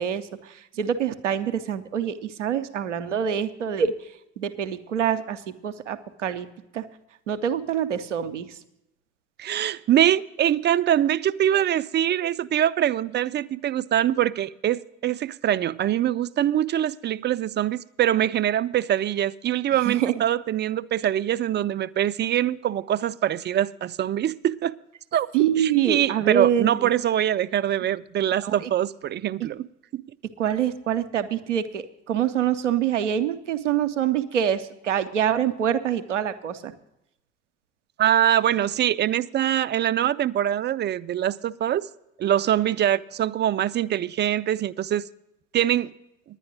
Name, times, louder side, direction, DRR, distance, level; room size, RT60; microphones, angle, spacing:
voice 1, 0.0-3.9 4.4-6.5 6.7-6.8 7.3-8.5 19.8-20.2 25.3-26.9 28.4-28.7 29.4-29.5 30.4-36.7, right 9 dB, 90° right, 0.5 m, -25 dB
voice 2, 9.4-24.7 25.1-25.3 25.6-29.7 29.9-30.0 38.0-41.9 42.2-45.0 45.5-45.9, right 11 dB, 30° right, 0.4 m, -23 dB
10.5 x 9.7 x 6.1 m
figure-of-eight pair, 50°, 35 cm